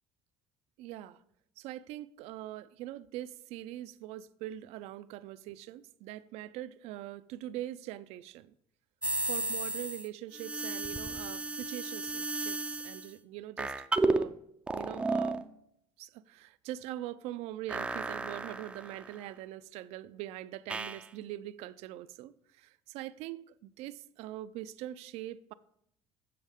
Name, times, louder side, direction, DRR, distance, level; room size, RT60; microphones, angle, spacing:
voice 1, 0.8-1.2 1.6-8.5 9.2-13.7 14.0-14.4 14.7-15.4 16.0-25.5, right 13 dB, 80° right, 0.4 m, -43 dB
sound 1, 9.0-10.1 10.3-13.1 13.6-14.3 14.7-15.4 17.7-19.2 20.7-21.0, right 3 dB, 10° right, 0.3 m, -33 dB
7.6 x 6.2 x 3.5 m
cardioid pair, 150°, 11 cm